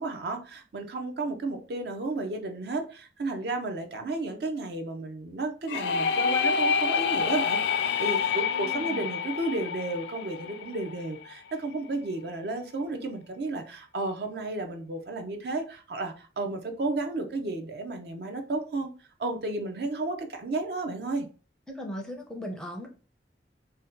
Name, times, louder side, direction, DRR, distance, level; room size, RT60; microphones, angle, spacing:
voice 1, 0.0-18.9 19.2-21.3, right 2 dB, 60° right, 0.5 m, -33 dB
sound 1, 5.7-11.3, left 6 dB, 75° left, 0.3 m, -28 dB
voice 2, 8.5-9.2 21.7-22.9, equal, 5° left, 0.4 m, -38 dB
2.7 x 2.1 x 3.6 m
head